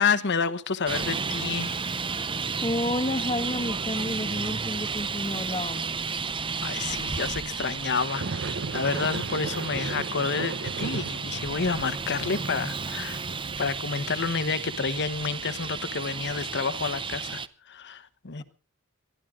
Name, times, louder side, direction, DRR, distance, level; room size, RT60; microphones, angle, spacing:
voice 1, 0.0-1.8 6.6-13.2 13.6-18.4, left 5 dB, 55° left, 1.1 m, -29 dB
Traffic noise roadway noise, 0.9-17.5, right 5 dB, 25° right, 0.7 m, -33 dB
voice 2, 2.6-6.0, left 1 dB, 25° left, 1.3 m, -30 dB
sound 1, 3.6-6.8 7.5-16.1, right 3 dB, 55° right, 0.9 m, -38 dB
23.0 x 13.5 x 3.7 m
head